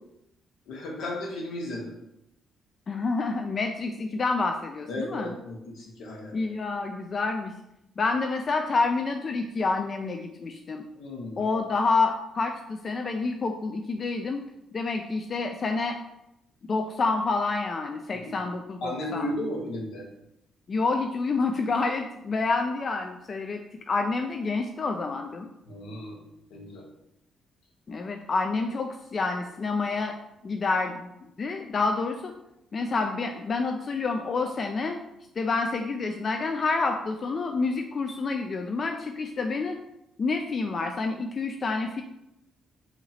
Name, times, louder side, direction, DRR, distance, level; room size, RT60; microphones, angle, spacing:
voice 1, 0.7-1.9 4.9-6.3 10.9-11.4 18.3-18.4 18.8-20.0 25.7-26.2 26.5-26.8, left 1 dB, 80° left, -1 dB, 1.0 m, -34 dB
voice 2, 2.9-5.3 6.3-7.5 8.0-10.8 11.4-14.4 14.7-16.0 16.7-19.3 20.7-25.5 27.9-30.2 30.4-31.1 31.4-32.3 32.7-35.0 35.4-39.8 40.2-42.0, left 3 dB, 40° left, 4 dB, 0.3 m, -28 dB
2.9 x 2.9 x 3.9 m, 0.82 s
cardioid pair, 90°, 0 cm